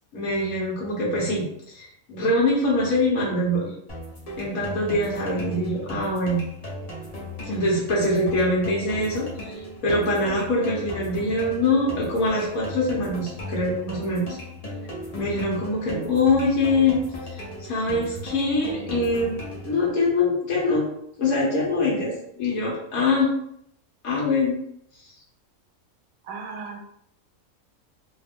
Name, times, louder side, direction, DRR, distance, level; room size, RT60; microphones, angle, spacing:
voice 1, 0.1-3.7 4.4-6.4 7.4-14.2 15.1-17.0 17.3-20.9 21.2-23.3 24.0-24.6, left 2 dB, 80° left, -5 dB, 1.4 m, -24 dB
sound 1, 3.9-19.9, left 1 dB, 35° left, 0.8 m, -37 dB
voice 2, 26.2-26.8, right 4 dB, 80° right, 4 dB, 1.0 m, -35 dB
3.1 x 2.4 x 3.5 m, 0.72 s
omnidirectional pair, 1.5 m